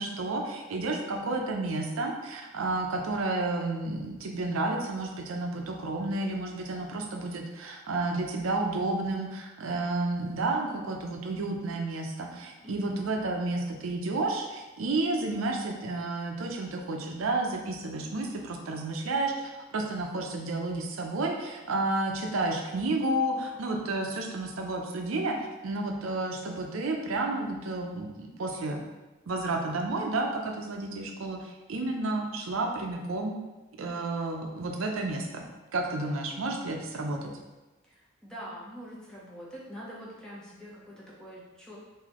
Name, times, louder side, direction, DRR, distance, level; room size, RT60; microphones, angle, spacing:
voice 1, 0.0-28.8 29.3-33.4 33.8-35.4 35.7-37.3, right 2 dB, 80° right, 2 dB, 0.5 m, -31 dB
voice 2, 12.6-13.1 37.8-41.8, equal, 5° left, -7 dB, 0.6 m, -45 dB
3.9 x 2.7 x 2.9 m, 1.1 s
head